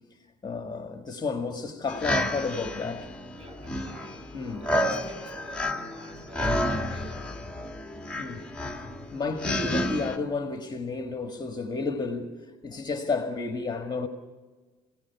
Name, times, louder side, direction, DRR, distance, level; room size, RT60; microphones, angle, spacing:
voice 1, 0.4-3.1 4.3-4.6 8.2-8.5 9.1-14.1, left 4 dB, 25° left, 1.7 m, -31 dB
sound 1, 1.9-10.2, left 1 dB, 5° left, 1.7 m, -31 dB
voice 2, 3.3-4.2 4.6-7.9, right 1 dB, 35° right, 8.0 m, -49 dB
27.5 x 16.5 x 7.0 m
cardioid pair, 110°, 17 cm